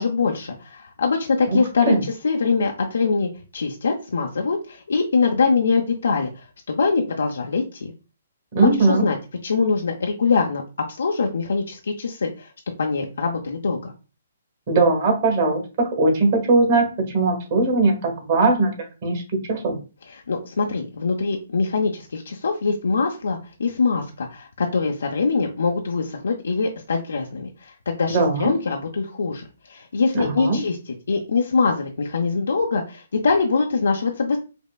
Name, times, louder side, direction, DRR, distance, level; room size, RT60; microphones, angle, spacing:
voice 1, 0.0-7.9 8.8-9.2 9.4-10.6 10.9-12.5 12.8-13.9 20.1-34.4, left 4 dB, 85° left, 1 dB, 0.5 m, -23 dB
voice 2, 8.5-9.0 14.7-16.9 17.1-18.7 19.0-19.2 19.5-19.8 28.1-28.5 30.1-30.6, right 3 dB, 45° right, 2 dB, 1.5 m, -19 dB
5.2 x 2.2 x 2.4 m, 0.33 s
hypercardioid pair, 145°, 0 cm